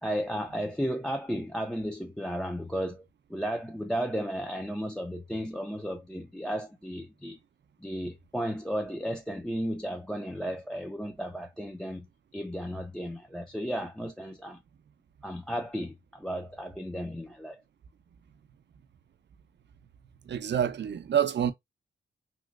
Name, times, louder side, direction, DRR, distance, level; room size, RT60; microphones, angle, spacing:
voice 1, 0.0-3.0 3.3-7.4 7.8-12.1 12.3-14.6 15.2-17.6, equal, 5° left, 0.4 m, -34 dB
voice 2, 20.3-21.5, right 9 dB, 60° right, 0.5 m, -27 dB
3.1 x 3.0 x 2.4 m
cardioid pair, 70°, 21 cm